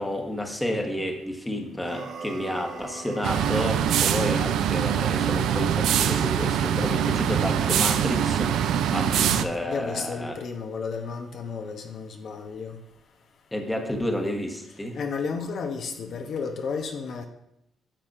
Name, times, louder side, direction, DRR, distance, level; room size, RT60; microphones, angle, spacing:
voice 1, 0.0-8.6 8.9-10.4 13.5-15.0, left 1 dB, 5° left, 3 dB, 1.1 m, -30 dB
sound 1, 1.8-4.0, right 4 dB, 65° right, 0.9 m, -39 dB
sound 2, 3.2-9.4, right 9 dB, 80° right, 0.4 m, -23 dB
voice 2, 9.0-12.8 14.9-17.3, left 5 dB, 65° left, 4 dB, 0.8 m, -33 dB
10.0 x 7.0 x 2.5 m, 0.79 s
cardioid pair, 90°, 0 cm